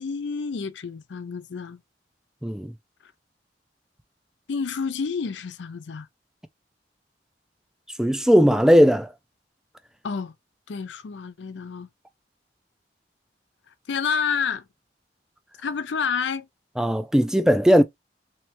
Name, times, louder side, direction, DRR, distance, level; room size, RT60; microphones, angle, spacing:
voice 1, 0.0-1.8 3.0-3.1 4.5-6.1 10.0-10.3 10.7-11.9 13.7-14.7 15.6-16.5, left 5 dB, 80° left, 0.5 m, -29 dB
voice 2, 2.4-2.7 8.0-9.1 16.8-17.8, equal, 5° right, 0.4 m, -18 dB
3.1 x 3.1 x 2.9 m
head